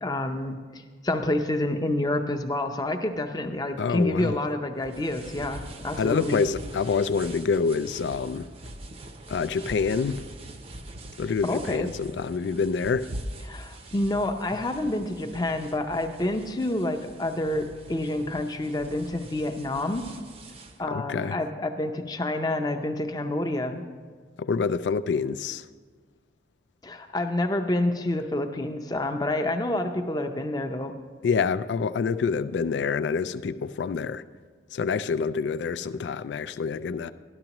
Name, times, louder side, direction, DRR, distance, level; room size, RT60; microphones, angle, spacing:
voice 1, 0.0-6.4 11.4-11.9 13.5-20.1 20.8-23.8 26.8-30.9, left 1 dB, 20° left, 6 dB, 0.6 m, -28 dB
voice 2, 3.8-4.4 6.0-8.5 9.3-10.2 11.2-13.1 20.9-21.4 24.4-25.7 31.2-34.2 34.7-37.1, left 5 dB, 75° left, 13 dB, 0.3 m, -27 dB
sound 1, 4.8-20.8, right 1 dB, 35° right, 0.6 m, -43 dB
13.0 x 12.0 x 3.0 m, 1.5 s
head